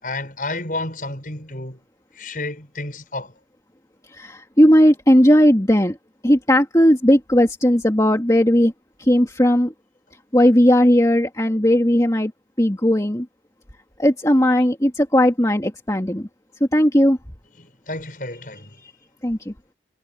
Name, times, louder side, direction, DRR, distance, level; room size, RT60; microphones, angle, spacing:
voice 1, 0.0-1.8 2.1-3.3 17.6-18.8, left 2 dB, 50° left, 6.9 m, -31 dB
voice 2, 4.1-6.0 6.2-8.7 9.0-9.7 10.3-12.3 12.6-13.3 14.0-16.3 16.6-17.2 18.8-18.9 19.2-19.5, equal, 20° left, 2.1 m, -16 dB
head